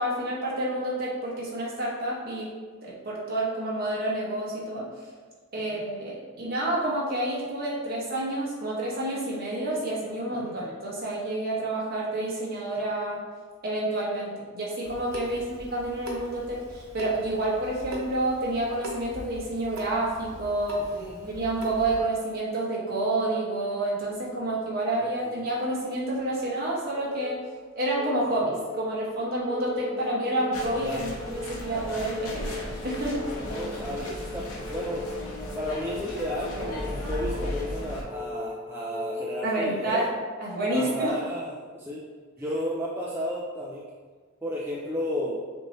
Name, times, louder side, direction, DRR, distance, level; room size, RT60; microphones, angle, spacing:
voice 1, 0.0-2.5 2.8-4.9 5.5-13.2 13.6-20.8 21.3-27.4 27.8-33.2 39.4-40.1 40.4-41.2, right 1 dB, 40° right, -5 dB, 1.1 m, -29 dB
Water tap faucet / Sink (filling or washing) / Drip, 14.8-22.0, equal, 75° right, 1.0 m, -42 dB
voice 2, 20.9-21.3 24.9-25.4 26.4-26.6 30.8-31.1 33.4-35.1 35.5-40.1 40.7-42.0 42.4-43.8 44.4-45.4, equal, 10° right, -5 dB, 0.3 m, -33 dB
sound 1, 26.9-39.9, left 3 dB, 25° left, 1.1 m, -39 dB
sound 2, 30.5-38.0, left 1 dB, 75° left, 0.9 m, -36 dB
6.4 x 2.7 x 3.0 m, 1.5 s
head